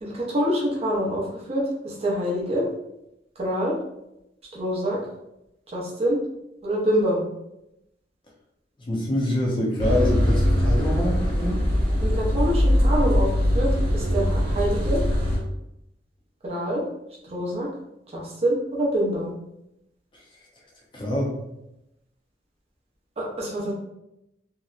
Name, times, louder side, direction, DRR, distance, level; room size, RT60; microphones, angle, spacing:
voice 1, 0.0-2.7 3.4-3.8 4.5-5.0 5.7-6.2 6.6-7.2 12.0-15.0 16.4-16.8 17.2-17.7 18.1-19.3 23.2-23.7, equal, 35° right, -3 dB, 0.6 m, -26 dB
voice 2, 8.8-11.7 20.9-21.3, left 1 dB, 25° left, -2 dB, 0.5 m, -25 dB
sound 1, 9.8-15.4, equal, 60° right, 0.9 m, -21 dB
2.7 x 2.1 x 2.3 m, 0.86 s
head